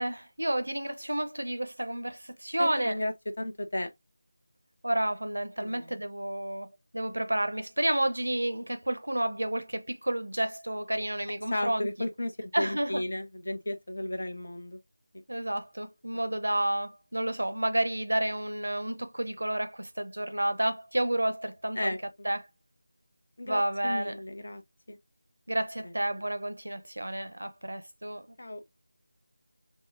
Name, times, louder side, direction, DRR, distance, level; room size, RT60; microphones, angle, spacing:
voice 1, 0.0-2.9 4.8-11.9 12.5-13.0 15.3-21.9 22.2-22.4 23.5-24.2 25.5-28.2, right 1 dB, 75° right, 0.6 m, -30 dB
voice 2, 2.6-3.9 5.6-5.9 11.5-14.8 21.7-22.3 23.4-24.6 24.9-25.0 25.8-25.9 28.4-28.6, left 1 dB, 55° left, 0.7 m, -34 dB
3.6 x 2.0 x 2.4 m
figure-of-eight pair, 165°, 0 cm